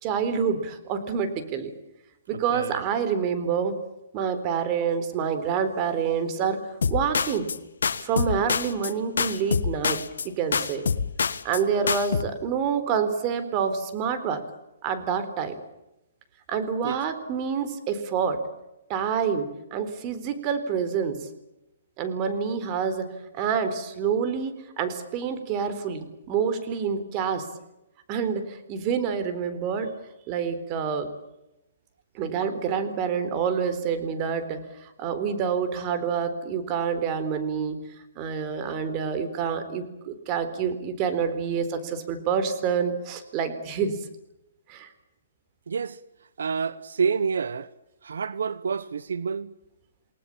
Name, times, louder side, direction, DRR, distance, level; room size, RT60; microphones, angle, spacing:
voice 1, 0.0-1.7 2.3-3.8 4.1-6.6 6.9-7.5 8.0-10.9 11.4-14.4 14.8-15.6 16.5-18.4 18.9-21.3 22.0-23.1 23.3-27.5 28.1-29.9 30.3-31.1 32.1-37.8 38.2-43.9 44.7-44.9, right 7 dB, 30° right, 4.0 m, -27 dB
voice 2, 2.5-2.8 16.8-17.0 45.7-46.0 46.4-47.7 48.0-49.5, right 5 dB, 85° right, 1.0 m, -28 dB
sound 1, 6.8-7.6 7.8-8.9 9.2-10.3 10.5-11.6 11.9-12.2, left 6 dB, 85° left, 1.8 m, -26 dB
29.0 x 19.5 x 8.7 m
hypercardioid pair, 155°, 0 cm